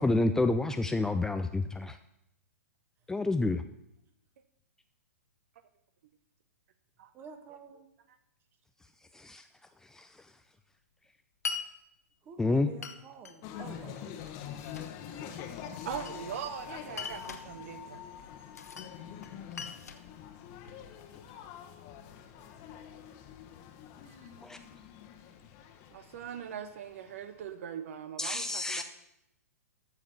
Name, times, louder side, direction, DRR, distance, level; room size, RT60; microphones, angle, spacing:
voice 1, 0.0-2.0 3.1-3.6 9.1-9.4 9.9-10.1 12.4-12.7 24.4-24.6 28.2-28.8, left 2 dB, 5° left, 8 dB, 0.4 m, -28 dB
voice 2, 7.1-7.9 12.2-14.1 15.3-15.5, right 5 dB, 25° right, 7 dB, 1.6 m, -49 dB
Glass, 11.4-11.7 12.8-13.4 14.2-14.9 15.8-16.5 16.9-17.5 18.5-18.9 19.2-20.9, left 5 dB, 75° left, 1.1 m, -41 dB
sound 1, 13.4-27.5, left 9 dB, 40° left, 1.3 m, -45 dB
voice 3, 15.8-18.0 24.0-24.3 25.9-28.8, right 8 dB, 55° right, 11 dB, 0.9 m, -41 dB
14.0 x 4.9 x 7.0 m, 0.82 s
figure-of-eight pair, 115°, 9 cm